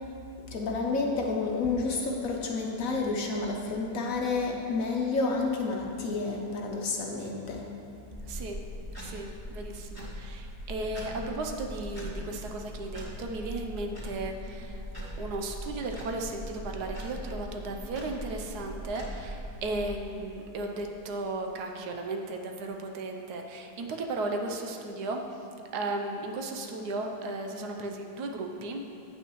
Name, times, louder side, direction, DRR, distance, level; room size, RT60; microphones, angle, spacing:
voice 1, 0.5-7.6, left 3 dB, 60° left, 0 dB, 1.0 m, -30 dB
sound 1, 8.1-19.9, equal, 15° right, 1.9 m, -40 dB
voice 2, 8.3-8.6 9.0-14.8 15.2-25.2 25.7-28.8, right 2 dB, 75° right, 3 dB, 1.2 m, -35 dB
8.9 x 8.5 x 3.1 m, 2.6 s
omnidirectional pair, 1.8 m